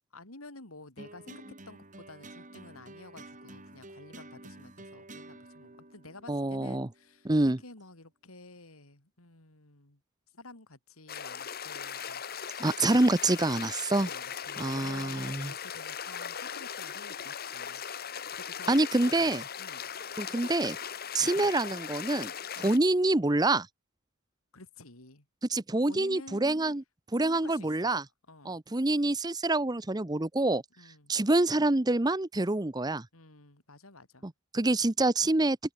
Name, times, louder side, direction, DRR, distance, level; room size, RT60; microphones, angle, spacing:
voice 1, 0.1-10.0 10.3-12.2 13.9-17.8 18.3-18.9 19.2-19.9 21.2-21.5 22.6-22.8 24.5-25.3 25.9-26.5 27.2-28.0 28.3-28.6 30.8-31.1 33.1-34.3, left 2 dB, 85° left, 4.2 m, -51 dB
sound 1, 1.0-7.4, right 2 dB, 35° right, 6.7 m, -50 dB
voice 2, 6.3-6.9 7.2-7.6 12.6-14.1 14.6-15.5 18.7-19.4 20.2-20.8 21.1-22.3 22.6-23.7 25.5-26.8 27.1-28.0 28.4-30.6 31.1-33.1 34.2-35.6, right 2 dB, 20° right, 0.8 m, -26 dB
sound 2, 11.1-22.8, left 8 dB, 45° left, 1.5 m, -39 dB
head